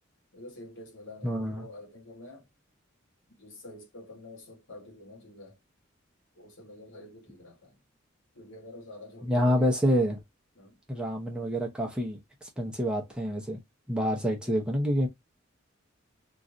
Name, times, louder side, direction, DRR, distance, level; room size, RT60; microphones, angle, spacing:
voice 1, 0.3-2.5 3.4-5.6 6.3-7.8 8.3-9.7 10.6-10.8, left 1 dB, 75° left, 1.1 m, -47 dB
voice 2, 1.2-1.7 9.2-10.2 10.9-12.2 12.6-13.6 13.9-15.1, equal, 5° right, 0.7 m, -27 dB
3.1 x 2.5 x 2.5 m
head